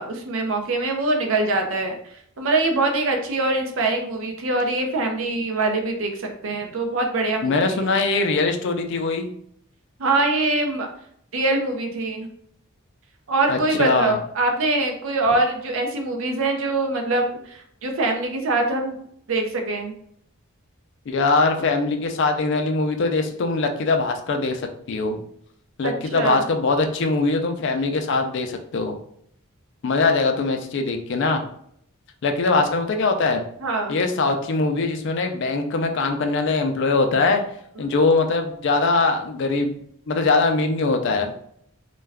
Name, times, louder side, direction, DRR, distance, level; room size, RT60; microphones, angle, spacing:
voice 1, 0.0-7.8 10.0-10.9 11.3-12.3 13.3-19.0 19.3-19.9 25.8-26.4 33.6-33.9 37.8-37.9, right 2 dB, 65° right, 4 dB, 0.5 m, -23 dB
voice 2, 7.4-9.3 13.5-14.2 21.1-25.2 25.8-28.9 29.8-31.5 32.2-33.4 33.9-37.4 37.8-39.8 40.1-41.3, left 3 dB, 55° left, 5 dB, 0.3 m, -22 dB
2.3 x 2.2 x 3.3 m, 0.68 s
head